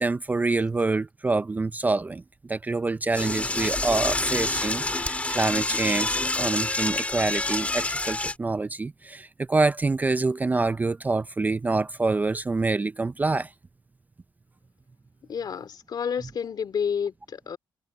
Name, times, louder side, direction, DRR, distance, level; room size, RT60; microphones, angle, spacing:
voice 1, 0.0-13.5, right 3 dB, 20° right, 0.4 m, -26 dB
Door / Toilet flush, 3.1-8.3, left 2 dB, 15° left, 1.8 m, -27 dB
voice 2, 15.3-17.6, left 7 dB, 50° left, 2.4 m, -30 dB
cardioid pair, 125°, 9 cm